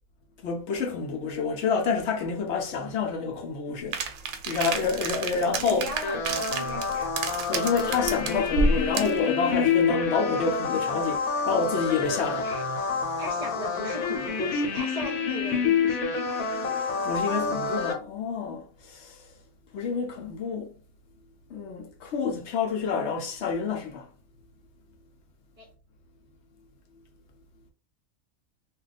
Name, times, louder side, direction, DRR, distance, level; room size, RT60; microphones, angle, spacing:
voice 1, 0.4-4.0 4.5-5.9 7.5-12.5 17.0-19.3 19.7-20.7 21.5-24.1, left 5 dB, 65° left, 0.8 m, -28 dB
sound 1, 3.9-9.2, right 3 dB, 85° right, 1.0 m, -30 dB
voice 2, 5.2-7.1 12.2-12.6 13.2-16.8 25.6-25.7, right 1 dB, 40° right, 0.6 m, -38 dB
sound 2, 6.0-17.9, left 5 dB, 80° left, 1.1 m, -28 dB
2.3 x 2.3 x 3.9 m
omnidirectional pair, 1.4 m